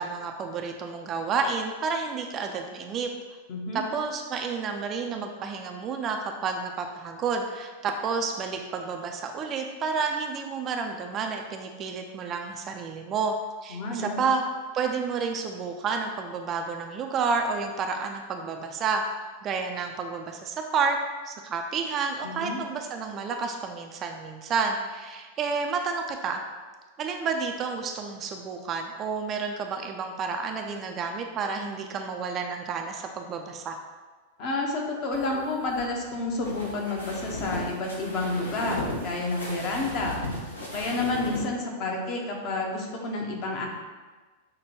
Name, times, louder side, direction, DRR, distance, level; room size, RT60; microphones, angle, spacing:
voice 1, 0.0-3.1 3.7-13.4 13.6-14.4 14.7-19.0 19.4-21.0 21.3-26.4 27.0-33.8, right 5 dB, 30° right, 4 dB, 0.3 m, -30 dB
voice 2, 3.5-3.8 13.7-14.2 22.2-22.6 34.4-40.2 40.7-43.7, left 2 dB, 40° left, 0 dB, 0.8 m, -30 dB
sound 1, 35.1-41.4, left 1 dB, 80° left, 0.7 m, -36 dB
5.9 x 2.2 x 3.0 m, 1.3 s
figure-of-eight pair, 90°, 0 cm